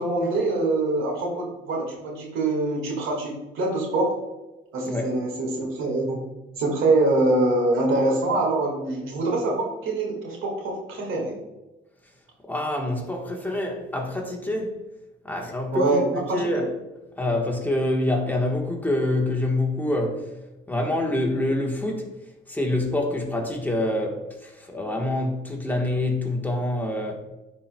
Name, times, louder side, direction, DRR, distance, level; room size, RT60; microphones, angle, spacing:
voice 1, 0.0-4.1 4.7-6.2 6.6-11.4 15.7-16.6, right 2 dB, 85° right, -1 dB, 1.9 m, -24 dB
voice 2, 12.4-14.8 15.2-16.7 17.2-20.2 20.7-22.1 22.5-27.2, left 1 dB, 10° left, 0 dB, 1.2 m, -26 dB
9.7 x 4.3 x 2.2 m, 1.0 s
cardioid pair, 90°, 20 cm